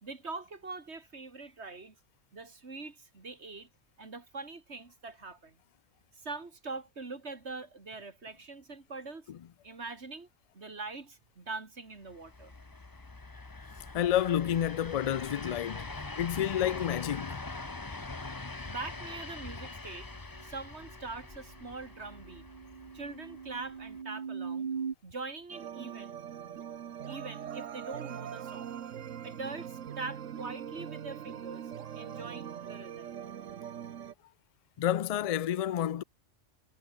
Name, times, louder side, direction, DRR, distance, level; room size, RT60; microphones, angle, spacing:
voice 1, 0.0-2.0 2.3-3.7 4.0-5.6 6.1-9.3 9.6-10.3 10.5-12.5 18.7-20.1 20.4-22.5 22.9-24.7 25.0-26.2 27.1-28.8 29.2-33.1, right 3 dB, 60° right, 3.0 m, -43 dB
sound 1, 12.1-24.0, left 3 dB, 20° left, 0.9 m, -43 dB
sound 2, 13.7-13.8 17.3-17.4 17.7-17.8 18.2-24.9, right 6 dB, 40° right, 1.0 m, -43 dB
voice 2, 13.9-15.9 16.2-17.4 34.8-36.0, left 10 dB, 75° left, 0.3 m, -29 dB
sound 3, 25.5-34.1, right 9 dB, 90° right, 1.3 m, -42 dB
omnidirectional pair, 1.3 m